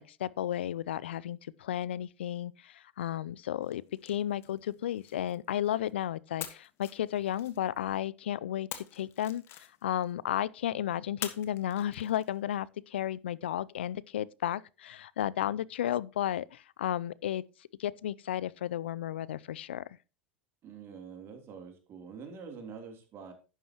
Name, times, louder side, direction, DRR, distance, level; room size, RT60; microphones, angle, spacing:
voice 1, 0.0-17.4 17.8-19.8, left 11 dB, 80° left, 0.4 m, -33 dB
sound 1, 3.6-5.9 6.4-8.0 8.7-10.1 11.2-12.6, left 11 dB, 45° left, 1.5 m, -46 dB
voice 2, 20.6-23.3, right 6 dB, 40° right, 3.2 m, -46 dB
11.5 x 9.3 x 3.0 m
hypercardioid pair, 90°, 6 cm